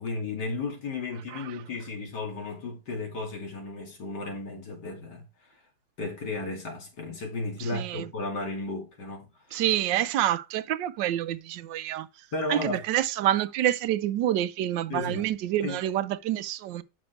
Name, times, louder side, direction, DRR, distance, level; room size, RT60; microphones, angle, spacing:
voice 1, 0.0-5.3 6.0-9.6 12.3-12.8 14.9-15.3 15.6-15.8, left 3 dB, 70° left, 3.0 m, -34 dB
voice 2, 7.6-8.1 9.5-12.1 12.5-16.8, right 12 dB, 90° right, 1.3 m, -27 dB
6.5 x 6.1 x 4.5 m
omnidirectional pair, 1.9 m